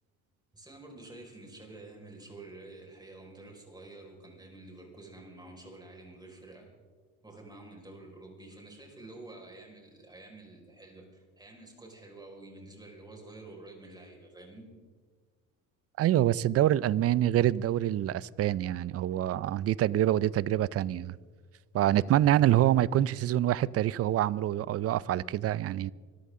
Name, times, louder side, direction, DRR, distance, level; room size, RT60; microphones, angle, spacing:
voice 1, 0.5-6.7 7.2-14.7, right 2 dB, 10° right, 5.2 m, -49 dB
voice 2, 16.0-21.1 21.7-25.9, right 12 dB, 45° right, 0.5 m, -26 dB
25.0 x 14.0 x 3.7 m
cardioid pair, 110°, 34 cm